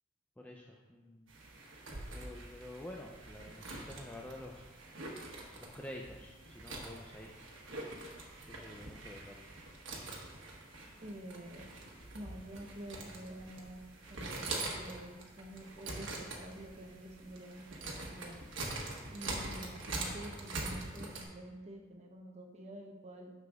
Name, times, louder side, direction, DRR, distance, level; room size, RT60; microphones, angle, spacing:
voice 1, 0.4-1.3 2.1-4.6 5.6-7.4 8.4-9.5, left 1 dB, 10° left, -1 dB, 0.4 m, -49 dB
sound 1, 1.3-21.2, right 2 dB, 90° right, 1.2 m, -44 dB
voice 2, 11.0-11.6 12.1-13.8 14.1-18.4 19.1-23.3, right 1 dB, 35° right, 2 dB, 0.9 m, -48 dB
9.8 x 6.8 x 2.4 m, 1.3 s
head